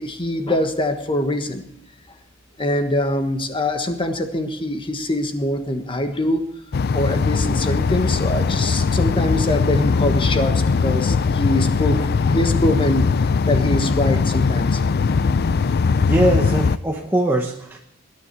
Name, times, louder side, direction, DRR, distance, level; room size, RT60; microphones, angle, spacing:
voice 1, 0.0-1.6 2.6-6.4 6.9-13.1 13.5-14.8, left 1 dB, 25° left, 7 dB, 1.4 m, -23 dB
sound 1, 6.7-16.8, left 4 dB, 50° left, 0.4 m, -20 dB
voice 2, 16.0-17.8, right 1 dB, 10° right, 1 dB, 1.0 m, -21 dB
20.0 x 9.9 x 4.6 m, 0.79 s
head